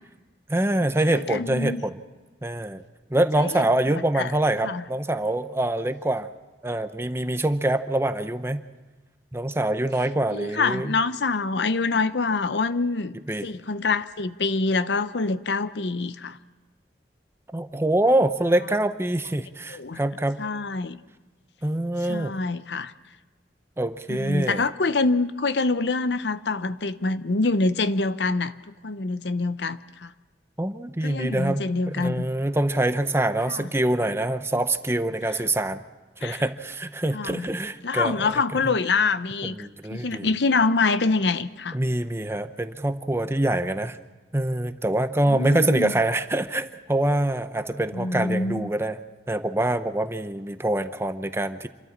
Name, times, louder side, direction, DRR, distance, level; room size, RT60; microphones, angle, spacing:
voice 1, 0.5-2.0 2.4-2.8 3.1-6.3 6.6-8.6 9.3-11.0 13.3-13.5 17.5-20.4 21.6-22.3 23.8-24.6 30.6-35.8 36.2-38.7 39.4-40.3 41.7-44.0 44.3-49.0 49.3-51.7, right 1 dB, 15° right, 11 dB, 0.8 m, -25 dB
voice 2, 1.1-1.8 3.4-3.6 4.2-4.3 4.6-4.8 10.3-13.2 13.4-16.4 19.7-20.0 20.4-21.0 22.1-22.9 24.1-28.5 28.8-30.1 31.0-32.2 33.5-33.6 36.2-36.4 37.1-37.4 37.8-41.8 45.3-45.9 47.9-48.6, left 3 dB, 75° left, 13 dB, 0.8 m, -25 dB
27.5 x 13.0 x 7.3 m, 1.3 s
head